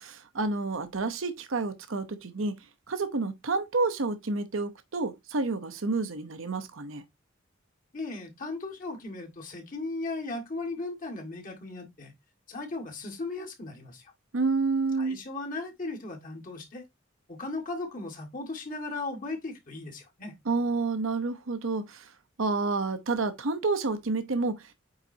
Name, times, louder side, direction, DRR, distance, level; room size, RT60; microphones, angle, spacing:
voice 1, 0.0-2.6 2.9-7.0 14.3-15.2 20.5-22.1 22.4-24.7, right 3 dB, 75° right, 0.8 m, -29 dB
voice 2, 7.9-12.1 12.5-14.1 15.0-16.9 17.3-20.3, left 2 dB, 40° left, 1.9 m, -37 dB
8.8 x 4.0 x 2.7 m
head